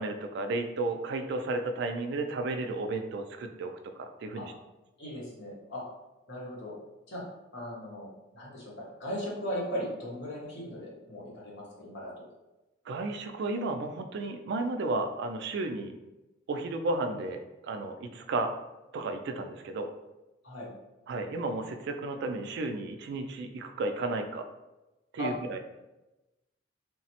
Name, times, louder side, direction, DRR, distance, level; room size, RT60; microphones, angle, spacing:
voice 1, 0.0-4.5 12.9-16.0 16.5-18.5 18.9-19.9 21.1-24.5 25.1-25.6, right 2 dB, 60° right, 6 dB, 0.3 m, -33 dB
voice 2, 5.0-5.8 6.3-6.7 7.1-7.2 7.5-8.1 8.3-12.1 20.4-20.7 25.2-25.3, equal, 65° left, -5 dB, 0.9 m, -37 dB
3.2 x 2.0 x 2.8 m, 1.0 s
head